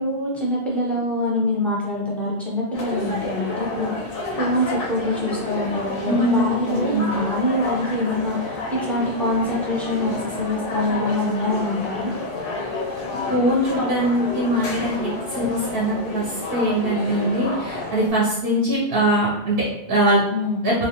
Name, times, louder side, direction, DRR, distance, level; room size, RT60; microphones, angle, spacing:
voice 1, 0.0-12.1 20.3-20.6, left 1 dB, ahead, -5 dB, 0.5 m, -25 dB
sound 1, 2.7-18.1, left 2 dB, 65° left, 0.7 m, -30 dB
voice 2, 6.0-7.1 13.3-20.2 20.6-20.8, right 1 dB, 70° right, -5 dB, 0.8 m, -22 dB
2.3 x 2.3 x 2.8 m, 0.85 s
omnidirectional pair, 1.1 m